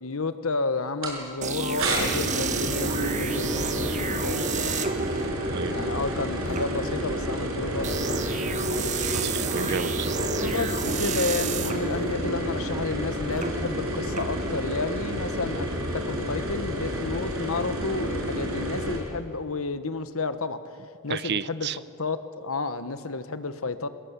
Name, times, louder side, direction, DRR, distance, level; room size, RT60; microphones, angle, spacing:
voice 1, 0.0-4.8 5.7-8.2 10.2-15.7 15.9-20.6 21.0-21.7 22.0-23.9, left 3 dB, 75° left, 11 dB, 1.3 m, -31 dB
sound 1, 1.0-1.2 1.8-19.0, equal, 75° right, 6.1 m, -30 dB
sound 2, 1.4-15.1, right 4 dB, 35° right, 1.5 m, -32 dB
voice 2, 5.4-5.8 9.0-10.2 21.1-21.8, right 6 dB, 50° right, 17 dB, 0.6 m, -32 dB
23.0 x 20.5 x 8.3 m, 2.4 s
head